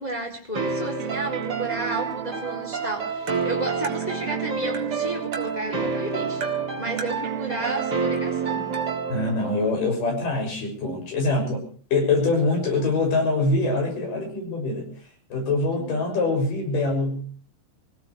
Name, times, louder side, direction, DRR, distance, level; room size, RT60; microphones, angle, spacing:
voice 1, 0.0-6.4 6.8-8.7 15.7-16.0, right 2 dB, 10° left, 1 dB, 3.7 m, -32 dB
sound 1, 0.5-9.4, right 4 dB, 30° right, 3.0 m, -29 dB
sound 2, 1.0-9.7, right 10 dB, 85° right, 3.1 m, -34 dB
Tap, 3.3-3.4 3.8-4.0 4.7-4.9 5.3-5.5 6.4-6.6 7.0-7.2 8.1-8.2 8.7-8.8, right 3 dB, 55° right, 3.2 m, -37 dB
voice 2, 9.1-11.6 11.9-14.9 15.3-17.3, left 3 dB, 65° left, 2 dB, 7.9 m, -24 dB
25.5 x 17.0 x 3.2 m, 0.41 s
omnidirectional pair, 4.1 m